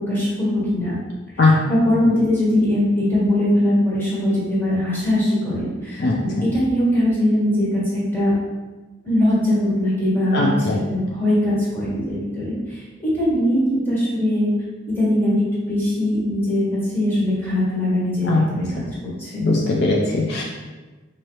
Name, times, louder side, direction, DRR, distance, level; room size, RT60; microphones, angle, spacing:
voice 1, 0.1-1.0 1.4-8.3 9.0-14.5 14.9-18.8 19.2-19.5, left 1 dB, 10° left, -9 dB, 1.4 m, -21 dB
voice 2, 10.3-10.8 18.2-18.5 19.4-20.4, left 3 dB, 55° left, -2 dB, 0.5 m, -19 dB
4.4 x 2.8 x 3.0 m, 1.2 s
head